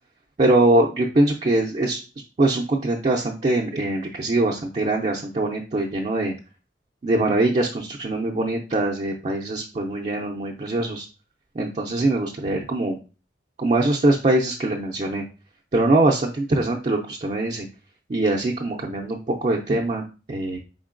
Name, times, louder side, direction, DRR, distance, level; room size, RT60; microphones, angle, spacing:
voice 1, 0.4-2.0 2.4-6.3 7.0-11.1 11.6-13.0 13.6-15.2 15.7-17.7 18.1-20.6, right 2 dB, 35° right, 0 dB, 0.5 m, -22 dB
4.3 x 3.8 x 2.5 m, 0.33 s
head